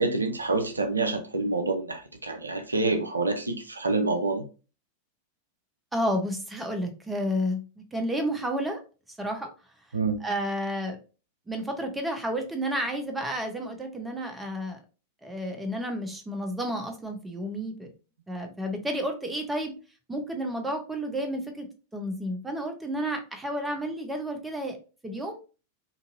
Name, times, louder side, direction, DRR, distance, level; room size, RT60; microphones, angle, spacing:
voice 1, 0.0-4.5 9.9-10.2, right 3 dB, 80° right, 0.4 m, -27 dB
voice 2, 5.9-7.6 7.9-8.8 9.2-9.5 10.2-11.0 11.5-14.8 15.2-17.9 18.3-19.7 20.1-24.8 25.0-25.4, equal, 10° right, 0.7 m, -31 dB
3.9 x 2.6 x 2.6 m
figure-of-eight pair, 90°, 0 cm